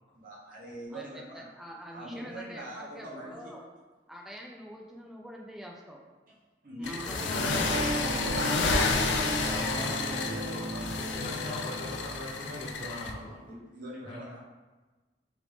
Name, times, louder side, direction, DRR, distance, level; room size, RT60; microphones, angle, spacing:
voice 1, 0.1-1.5 1.9-3.5 6.6-8.2 13.5-14.4, right 1 dB, 50° right, -5 dB, 0.8 m, -43 dB
voice 2, 0.9-3.7 4.1-6.0 6.8-8.8, equal, ahead, -1 dB, 0.3 m, -45 dB
sound 1, 6.8-13.1, left 4 dB, 80° left, 0.3 m, -31 dB
sound 2, 7.2-13.5, right 1 dB, 65° left, 0.8 m, -36 dB
voice 3, 8.6-8.9 9.3-13.4 14.1-14.2, left 1 dB, 30° left, -10 dB, 1.0 m, -40 dB
3.3 x 2.5 x 3.1 m, 1.2 s
head